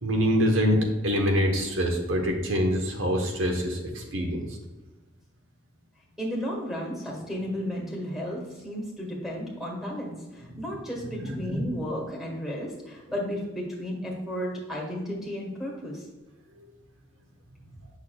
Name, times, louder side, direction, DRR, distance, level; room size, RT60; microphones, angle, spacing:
voice 1, 0.0-4.5 10.5-10.6 11.2-11.6 16.6-16.7, equal, 85° right, 2 dB, 1.1 m, -25 dB
voice 2, 6.2-16.1, equal, ahead, -3 dB, 1.7 m, -33 dB
8.3 x 6.0 x 2.3 m, 1.1 s
head